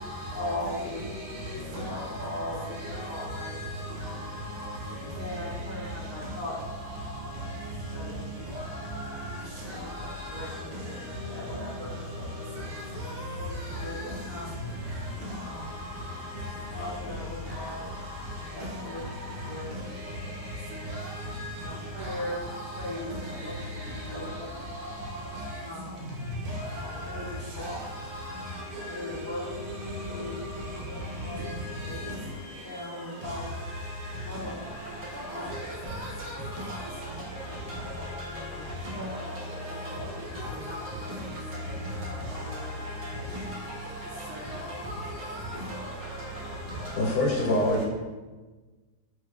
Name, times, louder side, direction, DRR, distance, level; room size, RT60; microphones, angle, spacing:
voice 1, 0.3-1.0 1.4-3.6 4.9-6.6 7.9-8.8 9.4-12.7 13.3-14.5 15.1-15.7 16.7-18.0 18.4-19.1 19.4-19.8 21.5-24.6 25.5-26.0 26.6-27.8 28.9-29.4 30.0-30.4 30.8-32.1 32.6-33.5 34.2-34.6 34.9-35.5 36.9-39.4 39.9-40.9 42.3-42.7, left 1 dB, 25° left, 1.5 m, -40 dB
voice 2, 28.7-29.2 29.8-29.9 31.6-31.7 35.1-35.5 35.9-36.7 39.7-39.9 40.7-40.8 44.5-44.6 44.9-45.5, equal, 85° right, 1.4 m, -36 dB
sound 1, 34.7-47.1, right 1 dB, 50° right, 1.6 m, -44 dB
voice 3, 46.9-47.8, left 1 dB, 70° left, 1.0 m, -24 dB
3.3 x 3.1 x 2.3 m
omnidirectional pair, 1.8 m